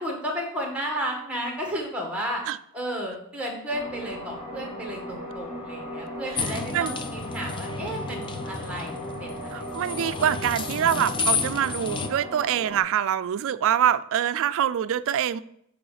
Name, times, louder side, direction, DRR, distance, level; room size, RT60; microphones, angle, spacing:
voice 1, 0.0-2.4 2.7-9.8 10.2-10.3, equal, 5° right, 1.5 m, -33 dB
sound 1, 3.7-12.8, equal, 40° left, 3.0 m, -37 dB
sound 2, 6.4-12.1, left 4 dB, 20° left, 0.4 m, -32 dB
voice 2, 9.5-15.4, right 9 dB, 60° right, 0.3 m, -25 dB
6.2 x 4.8 x 4.9 m
head